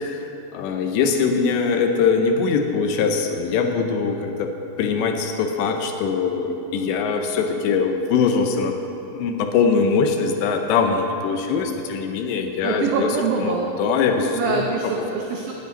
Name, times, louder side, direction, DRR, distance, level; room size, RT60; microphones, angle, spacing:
voice 1, 0.0-4.5 4.8-8.8 9.1-13.1 13.4-14.6 15.0-15.1, left 5 dB, 80° left, 5 dB, 2.8 m, -22 dB
voice 2, 12.6-13.7 14.3-15.5, right 5 dB, 90° right, 0 dB, 2.0 m, -25 dB
9.1 x 7.8 x 9.0 m, 2.9 s
omnidirectional pair, 5.3 m